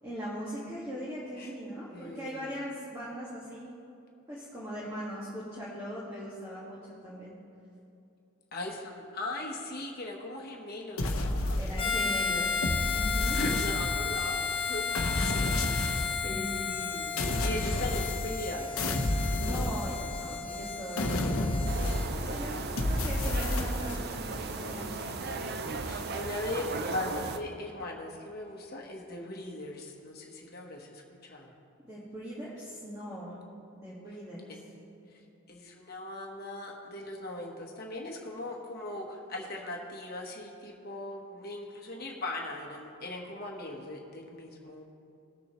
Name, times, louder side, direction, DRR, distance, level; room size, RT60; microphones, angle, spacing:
voice 1, 0.0-3.7 4.3-6.8 7.0-7.3 11.6-13.4 16.0-16.7 19.4-21.2 22.1-22.5 22.8-24.9 31.8-33.4 33.8-34.6, equal, 15° right, -9 dB, 1.8 m, -40 dB
voice 2, 1.9-2.5 8.5-12.1 13.3-15.2 15.6-18.9 22.5-22.8 25.8-31.5 35.5-44.9, left 2 dB, 45° left, 0 dB, 1.2 m, -39 dB
sound 1, 11.0-12.1 12.6-14.2 14.9-16.3 17.2-18.5 18.8-20.4 21.0-22.3 22.8-24.0, left 1 dB, 80° left, 0.9 m, -30 dB
Harmonica, 11.8-22.1, left 5 dB, 25° left, 0.8 m, -33 dB
sound 2, 21.7-27.4, right 3 dB, 50° right, 0.5 m, -36 dB
19.5 x 7.0 x 3.1 m, 2.7 s
head